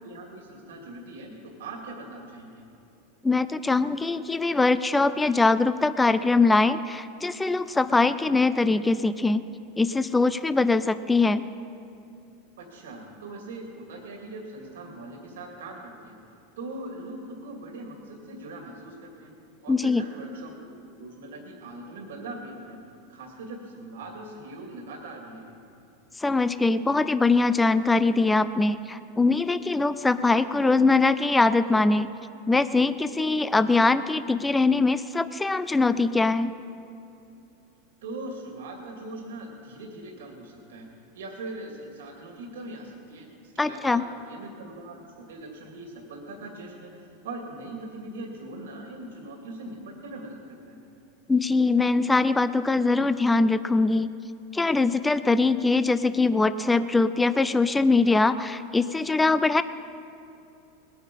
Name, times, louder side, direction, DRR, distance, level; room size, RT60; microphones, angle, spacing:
voice 1, 0.0-2.6 12.6-16.2 16.6-19.3 19.6-20.5 20.9-22.8 23.1-25.6 38.0-40.9 41.1-50.8, right 2 dB, 85° right, 1 dB, 2.4 m, -41 dB
voice 2, 3.2-9.4 9.8-11.4 19.7-20.1 26.2-32.1 32.5-36.5 43.6-44.0 51.3-54.1 54.5-59.6, left 3 dB, 10° left, 13 dB, 0.4 m, -22 dB
19.5 x 9.3 x 5.5 m, 2.7 s
hypercardioid pair, 120°, 0 cm